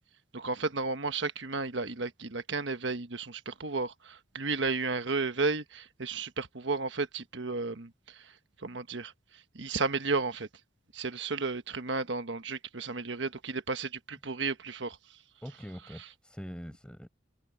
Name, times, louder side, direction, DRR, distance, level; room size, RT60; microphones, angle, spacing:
voice 1, 0.3-10.5 10.9-15.2, right 4 dB, 65° right, 1.3 m, -33 dB
voice 2, 15.4-17.1, equal, 5° left, 6.4 m, -43 dB
head